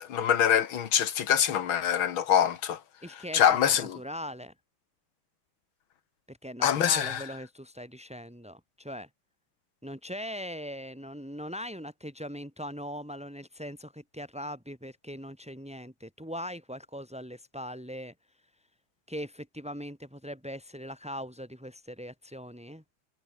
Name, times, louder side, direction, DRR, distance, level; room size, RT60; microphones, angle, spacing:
voice 1, 0.0-2.8 3.3-4.0 6.6-7.2, left 9 dB, 85° left, 2.3 m, -24 dB
voice 2, 3.0-4.5 6.3-9.1 9.8-18.1 19.1-22.8, equal, 5° right, 7.7 m, -40 dB
omnidirectional pair, 2.2 m